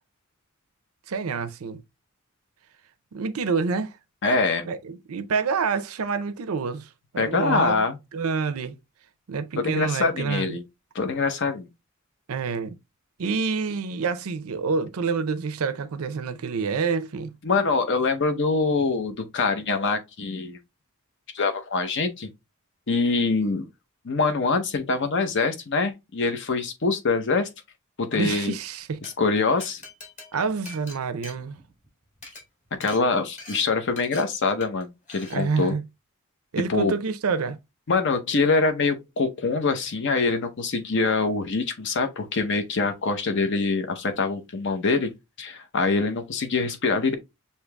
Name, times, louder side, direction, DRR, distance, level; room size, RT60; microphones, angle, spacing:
voice 1, 1.1-1.8 3.1-4.0 4.7-7.8 8.1-8.8 9.3-10.6 12.3-12.7 13.2-17.3 28.1-29.0 30.3-31.6 35.3-35.8 36.5-37.6, right 5 dB, 85° right, 0.5 m, -27 dB
voice 2, 4.2-4.7 7.2-8.0 9.6-10.6 10.9-11.7 17.4-20.6 21.3-22.3 22.9-23.6 24.0-27.5 28.0-28.5 29.0-29.8 32.8-35.7 36.7-36.9 37.9-45.1 45.4-47.1, left 4 dB, 60° left, 0.7 m, -24 dB
Glass, 28.8-29.1 29.6-31.9 32.2-32.4 32.8-33.0 33.4-33.6 34.0-34.2 34.6-34.8 35.1-35.4, left 2 dB, 35° left, 1.8 m, -43 dB
6.5 x 2.8 x 2.2 m
head